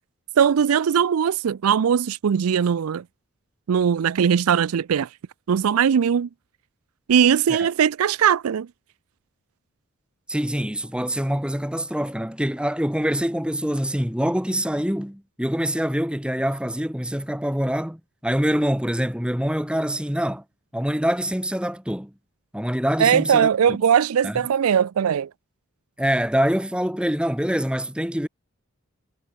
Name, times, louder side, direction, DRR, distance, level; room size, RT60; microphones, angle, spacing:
voice 1, 0.4-3.0 3.7-5.1 5.5-6.3 7.1-8.7 23.0-25.3, right 8 dB, 90° right, 0.4 m, -20 dB
voice 2, 10.3-20.4 20.7-22.1 22.5-23.8 24.2-24.4 26.0-28.3, equal, 5° right, 1.7 m, -25 dB
head